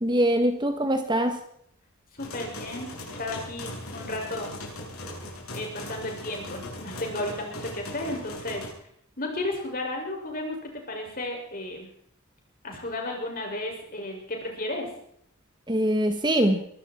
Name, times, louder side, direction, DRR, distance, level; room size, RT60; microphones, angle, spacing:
voice 1, 0.0-1.4 15.7-16.6, right 1 dB, 20° right, 7 dB, 1.6 m, -23 dB
voice 2, 2.1-2.9 3.2-4.5 5.5-8.7 9.2-10.6 10.9-11.9 12.6-14.9, left 1 dB, 40° left, 1 dB, 6.4 m, -33 dB
sound 1, 2.2-8.7, left 1 dB, 90° left, 7.7 m, -39 dB
23.5 x 13.5 x 4.6 m, 0.68 s
head